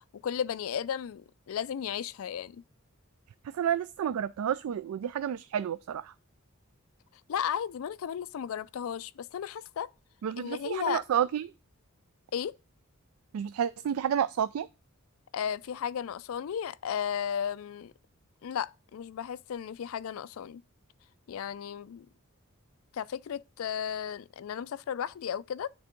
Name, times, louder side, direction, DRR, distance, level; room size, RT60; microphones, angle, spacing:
voice 1, 0.2-2.6 7.3-9.9 10.4-11.0 12.3-12.5 15.3-17.9 18.4-20.6 21.3-22.1 22.9-25.7, left 8 dB, 75° left, 0.4 m, -34 dB
voice 2, 3.5-6.1 10.2-11.5 13.3-14.7, right 9 dB, 90° right, 0.3 m, -30 dB
9.4 x 3.5 x 5.1 m
head